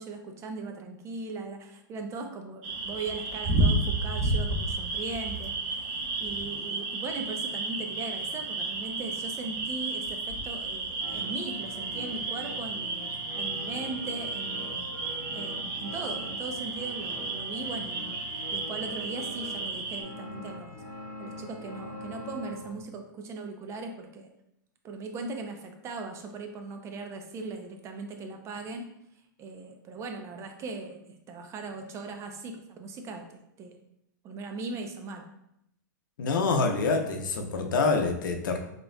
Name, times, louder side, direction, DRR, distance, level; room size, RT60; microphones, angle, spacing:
voice 1, 0.0-20.8 21.2-24.3 24.8-28.9 29.4-33.8 34.2-35.3, right 3 dB, 25° right, 4 dB, 0.6 m, -39 dB
sound 1, 2.6-20.0, right 2 dB, 50° right, 1.0 m, -32 dB
sound 2, 11.0-22.8, left 2 dB, 25° left, 1.1 m, -43 dB
voice 2, 36.2-38.6, left 4 dB, 75° left, 4 dB, 0.7 m, -26 dB
5.2 x 3.0 x 2.2 m, 0.79 s
hypercardioid pair, 120°, 11 cm